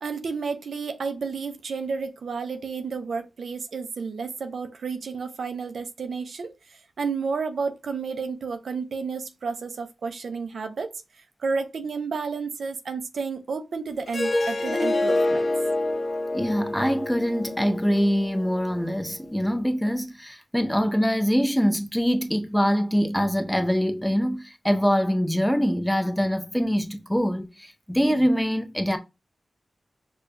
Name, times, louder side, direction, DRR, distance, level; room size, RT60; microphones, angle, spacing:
voice 1, 0.0-15.5, right 5 dB, 85° right, 0.4 m, -31 dB
Harp, 14.1-19.2, left 2 dB, 50° left, 0.6 m, -27 dB
voice 2, 16.3-29.0, equal, 5° left, 0.6 m, -24 dB
4.9 x 2.2 x 2.5 m
cardioid pair, 70°, 0 cm